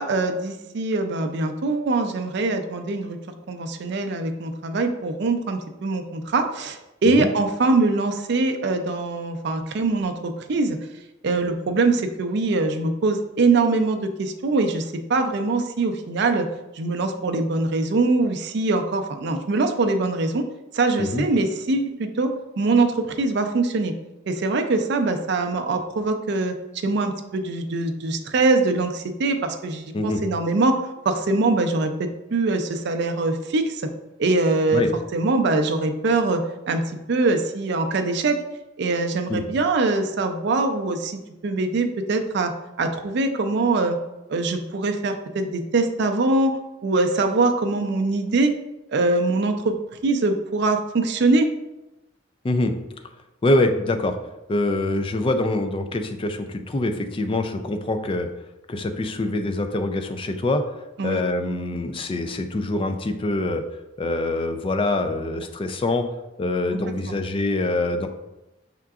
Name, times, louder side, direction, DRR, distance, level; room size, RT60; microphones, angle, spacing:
voice 1, 0.0-3.2 3.5-10.8 11.2-16.5 16.8-20.4 20.7-22.3 22.6-23.9 24.3-26.5 26.8-30.8 31.1-33.8 34.2-34.8 35.1-36.8 37.1-38.4 38.8-42.5 42.8-44.0 44.3-48.5 48.9-49.7 50.0-51.5 61.0-61.2 67.1-67.2, right 3 dB, 60° right, 6 dB, 0.4 m, -23 dB
voice 2, 53.4-54.2 54.5-58.3 58.7-60.6 61.0-63.6 64.0-66.1 66.4-68.1, left 2 dB, 25° left, 7 dB, 0.3 m, -24 dB
5.6 x 3.6 x 2.4 m, 0.98 s
head